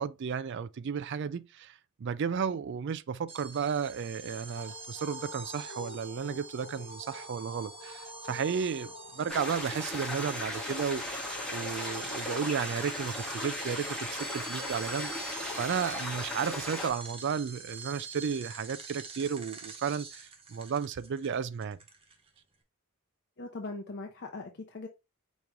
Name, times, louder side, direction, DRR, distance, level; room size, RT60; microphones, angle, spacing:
voice 1, 0.0-1.7 2.0-11.2 11.5-21.8, right 6 dB, 55° right, 0.4 m, -33 dB
sound 1, 3.3-22.4, right 4 dB, 25° right, 0.8 m, -46 dB
sound 2, 4.1-10.2, left 3 dB, 75° left, 1.0 m, -48 dB
sound 3, 9.3-16.9, left 1 dB, 5° left, 1.2 m, -37 dB
voice 2, 23.4-24.9, left 3 dB, 50° left, 0.6 m, -40 dB
5.2 x 3.0 x 3.4 m
head